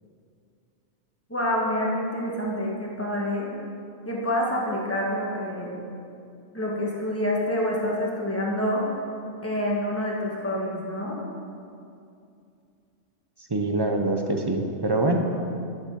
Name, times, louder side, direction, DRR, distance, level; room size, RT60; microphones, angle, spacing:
voice 1, 1.3-3.5 4.1-5.8 6.5-8.8 9.4-11.2, left 1 dB, 10° left, -4 dB, 1.7 m, -27 dB
voice 2, 13.5-15.4, right 2 dB, 25° right, 3 dB, 0.7 m, -24 dB
12.0 x 6.1 x 5.9 m, 2.5 s
omnidirectional pair, 1.2 m